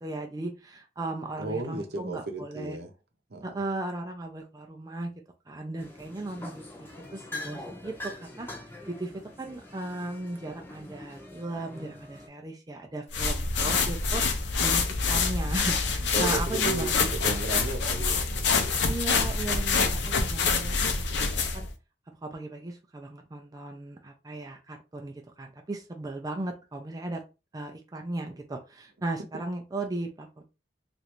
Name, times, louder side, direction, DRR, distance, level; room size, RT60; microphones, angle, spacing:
voice 1, 0.0-2.8 3.4-5.1 5.5-8.5 8.9-14.2 14.6-17.1 18.9-20.8 21.2-21.7 22.1-27.2 27.5-30.4, right 2 dB, 20° right, 0.4 m, -36 dB
voice 2, 1.4-2.9 3.3-3.6 16.1-18.9, right 3 dB, 65° right, 0.7 m, -35 dB
sound 1, 5.8-12.3, left 2 dB, 15° left, 0.7 m, -43 dB
sound 2, 13.1-21.7, left 4 dB, 80° left, 0.6 m, -26 dB
3.1 x 2.5 x 2.9 m
head